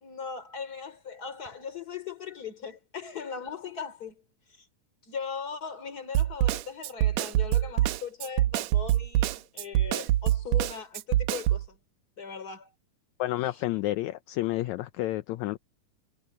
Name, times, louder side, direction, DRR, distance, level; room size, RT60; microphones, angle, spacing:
voice 1, 0.0-4.2 4.5-4.7 5.0-11.8 12.2-12.7, left 6 dB, 30° left, 3.3 m, -39 dB
Snare drum, 6.1-11.7, right 14 dB, 80° right, 1.7 m, -25 dB
voice 2, 13.2-15.6, left 16 dB, 75° left, 1.8 m, -30 dB
omnidirectional pair, 3.8 m